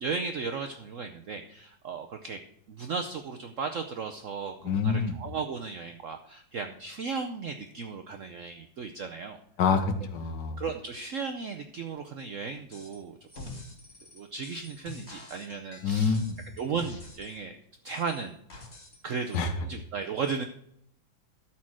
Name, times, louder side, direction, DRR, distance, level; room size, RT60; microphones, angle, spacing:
voice 1, 0.0-2.4 2.7-9.4 10.6-13.6 14.1-16.2 16.6-17.6 17.8-18.4 19.0-20.4, right 5 dB, 70° right, 6 dB, 0.7 m, -35 dB
voice 2, 4.6-5.2 9.6-10.6 15.8-16.4 19.3-19.5, left 5 dB, 70° left, 8 dB, 1.6 m, -26 dB
sound 1, 12.7-13.0 13.3-17.4 17.9-19.0 19.3-19.4, left 3 dB, 35° left, 2.1 m, -46 dB
13.0 x 4.4 x 6.2 m, 0.70 s
omnidirectional pair, 2.1 m